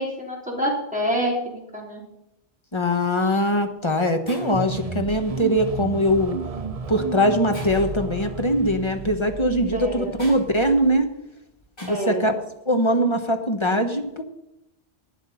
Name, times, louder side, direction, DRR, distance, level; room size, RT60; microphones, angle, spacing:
voice 1, 0.0-2.0 9.7-10.2 11.9-12.2, equal, 5° right, -3 dB, 3.8 m, -27 dB
voice 2, 2.7-6.4 6.9-11.1 11.8-12.4 12.7-14.2, equal, 25° left, 6 dB, 1.2 m, -22 dB
Shatter, 4.3-4.7 6.0-6.2 6.8-6.9 7.5-8.0 10.2-10.4 11.8-12.2, equal, 55° left, 5.5 m, -42 dB
sound 1, 4.4-11.0, right 4 dB, 40° right, 0.8 m, -33 dB
12.0 x 9.1 x 5.6 m, 0.87 s
omnidirectional pair, 1.1 m